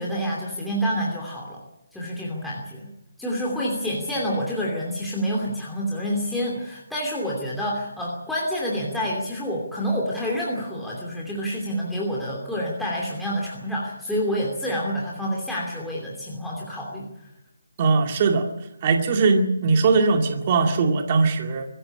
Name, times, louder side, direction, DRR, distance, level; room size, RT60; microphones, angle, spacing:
voice 1, 0.0-1.6 1.9-2.9 3.2-17.1, equal, ahead, -5 dB, 2.8 m, -28 dB
voice 2, 17.8-18.5 18.8-21.7, right 4 dB, 25° right, 4 dB, 2.2 m, -20 dB
24.0 x 14.5 x 9.8 m, 0.84 s
hypercardioid pair, 170°, 0 cm